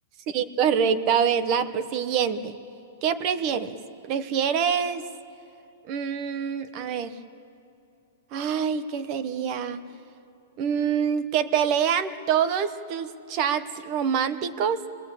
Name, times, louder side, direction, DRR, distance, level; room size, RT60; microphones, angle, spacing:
voice 1, 0.3-2.6 3.0-3.8 4.0-5.0 5.9-7.2 8.3-9.8 10.6-14.9, right 7 dB, 25° right, 11 dB, 1.0 m, -25 dB
29.5 x 20.5 x 8.3 m, 2.7 s
supercardioid pair, 180°, 0 cm